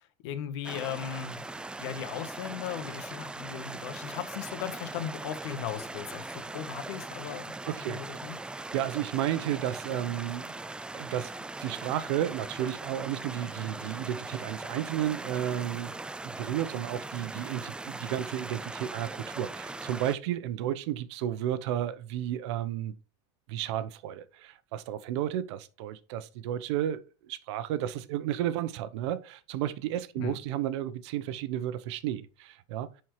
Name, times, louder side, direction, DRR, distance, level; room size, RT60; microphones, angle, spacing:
voice 1, 0.0-7.5 7.9-8.4 30.2-30.4, left 9 dB, 80° left, 1.2 m, -37 dB
sound 1, 0.6-20.2, right 2 dB, 5° right, 0.3 m, -40 dB
voice 2, 7.6-8.0 8.5-10.5 10.9-11.3 11.6-15.9 16.2-22.9 23.5-32.9, right 11 dB, 80° right, 0.8 m, -32 dB
10.5 x 4.5 x 3.2 m
supercardioid pair, 125°, 15 cm